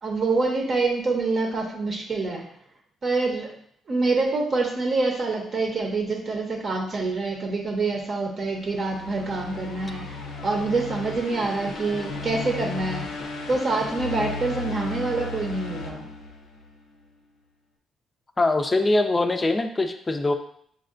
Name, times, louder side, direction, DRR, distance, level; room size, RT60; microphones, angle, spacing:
voice 1, 0.0-2.5 3.0-3.5 3.9-13.1 13.5-16.1, right 3 dB, 45° right, 1 dB, 0.8 m, -26 dB
sound 1, 8.5-16.8, left 3 dB, 85° left, 0.6 m, -35 dB
voice 2, 18.4-20.3, left 2 dB, 25° left, 7 dB, 0.4 m, -22 dB
6.3 x 2.2 x 2.5 m, 0.64 s
cardioid pair, 90°, 0 cm